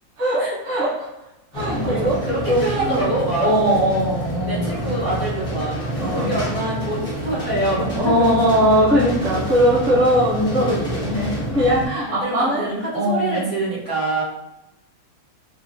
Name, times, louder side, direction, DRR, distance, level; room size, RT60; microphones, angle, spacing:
voice 1, 0.2-1.1 1.5-2.2 2.5-3.1 3.4-4.9 6.0-6.3 7.9-12.7 12.9-13.5, equal, 35° right, -10 dB, 1.2 m, -20 dB
sound 1, 1.5-11.9, right 1 dB, 30° left, 0.6 m, -28 dB
voice 2, 1.6-3.9 4.5-8.3 12.2-14.2, right 1 dB, 55° right, -9 dB, 2.0 m, -25 dB
4.9 x 2.1 x 2.7 m, 0.92 s
omnidirectional pair, 2.0 m